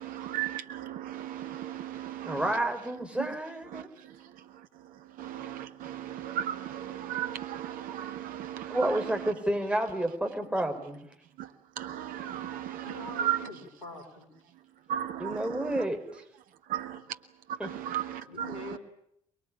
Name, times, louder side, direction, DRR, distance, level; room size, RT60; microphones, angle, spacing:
voice 1, 0.0-2.5 3.2-3.3 3.7-3.8 5.2-9.0 11.4-11.5 11.8-13.5 14.9-15.8 16.7-17.0 17.5-18.5, right 11 dB, 60° right, 1.5 m, -35 dB
voice 2, 2.3-3.9 8.7-11.1 15.2-16.0 17.6-17.7, right 1 dB, 5° right, 5.2 m, -30 dB
voice 3, 12.8-14.3 18.3-18.8, left 3 dB, 80° left, 4.2 m, -44 dB
24.0 x 22.5 x 8.7 m
figure-of-eight pair, 45°, 16 cm